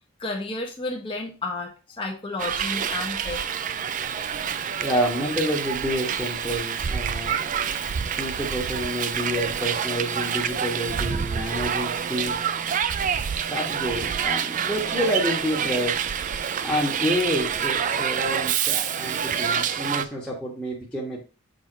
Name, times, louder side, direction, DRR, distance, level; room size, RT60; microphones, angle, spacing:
voice 1, 0.2-3.5 16.4-16.6, left 2 dB, 25° left, -2 dB, 1.3 m, -32 dB
Hiss, 2.4-20.1, right 8 dB, 35° right, 0.3 m, -27 dB
voice 2, 4.8-7.4 8.1-12.4 13.5-16.0 16.6-21.2, equal, 5° left, -3 dB, 1.4 m, -28 dB
6.4 x 3.6 x 5.1 m, 0.32 s
head